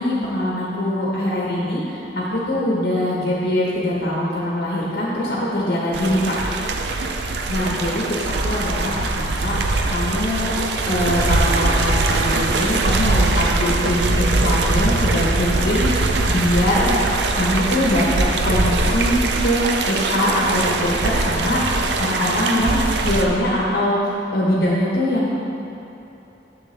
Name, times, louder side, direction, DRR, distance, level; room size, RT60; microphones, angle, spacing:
voice 1, 0.0-6.3 7.5-9.5 9.9-10.5 10.8-19.2 19.4-24.0 24.3-25.4, left 1 dB, 70° left, -6 dB, 1.2 m, -22 dB
sound 1, 5.9-23.2, right 3 dB, 80° right, 0.5 m, -21 dB
7.8 x 6.6 x 3.3 m, 2.9 s
head